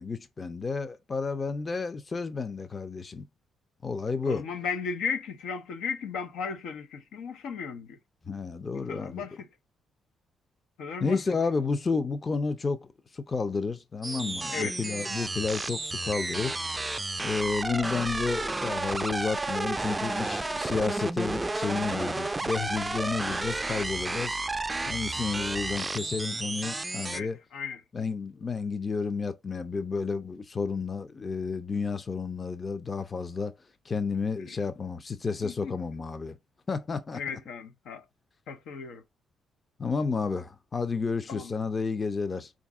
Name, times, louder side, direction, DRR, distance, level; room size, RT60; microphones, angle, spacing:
voice 1, 0.0-3.2 3.8-4.5 8.2-9.3 11.0-12.9 13.1-16.6 17.2-24.4 24.9-27.4 27.9-33.5 33.9-36.4 36.7-37.2 39.8-42.5, left 4 dB, 30° left, 0.6 m, -31 dB
voice 2, 4.2-8.0 8.9-9.5 10.8-11.2 14.5-14.8 27.1-27.8 34.5-34.6 35.4-35.7 37.1-38.0 38.5-39.0 41.3-41.5, left 5 dB, 85° left, 0.8 m, -35 dB
sound 1, 14.0-27.2, right 2 dB, 15° right, 0.4 m, -32 dB
4.1 x 2.5 x 3.5 m
cardioid pair, 90°, 0 cm